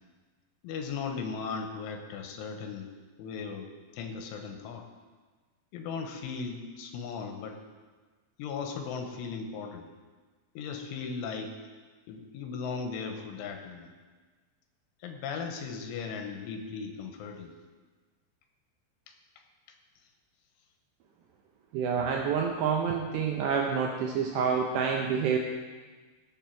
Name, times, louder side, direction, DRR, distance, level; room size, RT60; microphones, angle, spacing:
voice 1, 0.6-2.9 3.2-3.7 3.9-4.8 5.7-7.6 8.4-9.9 10.6-11.6 12.1-13.9 15.0-17.5, left 5 dB, 85° left, 4 dB, 3.3 m, -37 dB
voice 2, 21.7-25.4, right 6 dB, 80° right, 1 dB, 2.6 m, -28 dB
18.0 x 7.3 x 4.5 m, 1.4 s
omnidirectional pair, 5.7 m